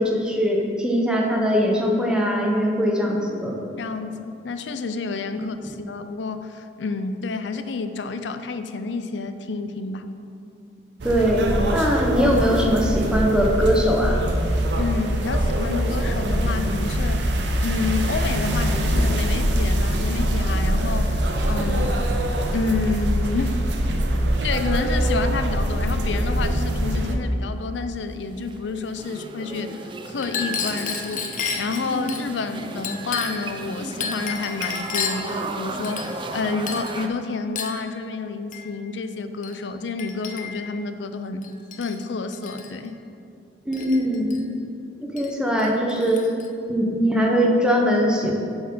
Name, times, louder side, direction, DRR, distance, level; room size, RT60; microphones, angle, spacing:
voice 1, 0.0-3.6 5.6-5.7 11.0-14.2 43.7-44.4 45.0-46.2 46.7-48.3, equal, 5° right, -1 dB, 0.8 m, -21 dB
voice 2, 3.8-10.0 14.7-17.3 17.6-22.0 22.5-23.6 24.4-29.8 30.0-31.3 31.6-41.5 41.8-43.0, left 4 dB, 90° left, 9 dB, 0.5 m, -29 dB
sound 1, 11.0-27.1, equal, 80° right, 0.7 m, -23 dB
sound 2, 28.1-37.1, right 2 dB, 30° right, 0.4 m, -35 dB
Chink clink, 30.2-32.2 32.8-33.5 34.0-35.3 35.8-36.4 36.7-37.0 37.6-37.8 38.5-38.7 39.4-39.6 40.0-40.7 41.4-42.0 42.3-42.7 43.7-44.4 45.2-45.3 45.6-46.5, left 6 dB, 45° left, 0.6 m, -31 dB
7.6 x 4.4 x 5.4 m, 2.5 s
head